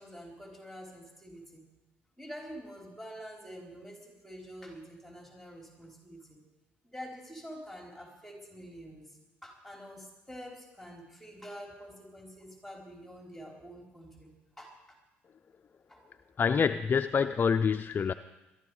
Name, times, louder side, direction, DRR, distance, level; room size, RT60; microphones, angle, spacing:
voice 1, 0.0-1.6 2.2-6.4 6.8-9.0 9.4-14.3 14.6-14.7 15.9-16.0, equal, 5° left, 0 dB, 4.1 m, -47 dB
voice 2, 16.4-18.1, left 6 dB, 35° left, 9 dB, 0.5 m, -26 dB
22.0 x 12.5 x 4.9 m, 1.0 s
hypercardioid pair, 65°, 6 cm